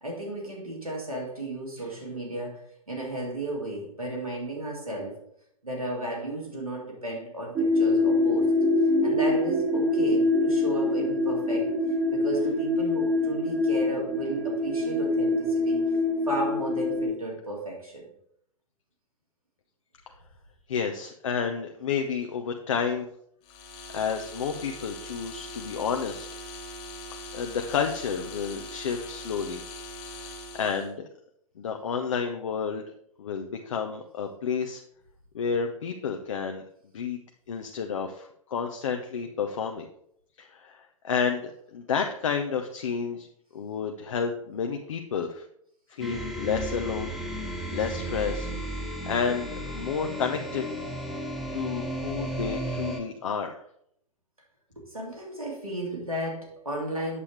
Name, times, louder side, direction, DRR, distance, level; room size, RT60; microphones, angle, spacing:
voice 1, 0.0-5.2 5.6-8.5 9.0-11.7 12.1-15.8 16.3-18.0 54.8-57.2, right 1 dB, 90° right, -2 dB, 2.6 m, -34 dB
sound 1, 7.6-17.1, left 2 dB, 20° right, 1.2 m, -24 dB
voice 2, 20.7-23.1 23.9-26.3 27.3-29.6 30.2-31.1 31.6-32.8 33.2-34.8 35.3-36.6 36.9-37.2 37.5-39.8 40.4-43.3 43.5-45.4 45.9-48.5 49.0-50.6 51.5-53.6, left 6 dB, 65° left, 5 dB, 0.7 m, -30 dB
sound 2, 23.4-30.9, left 1 dB, 35° left, 1.9 m, -41 dB
sound 3, 46.0-53.0, right 1 dB, ahead, 1.2 m, -34 dB
8.3 x 7.0 x 3.3 m, 0.70 s
figure-of-eight pair, 100°, 18 cm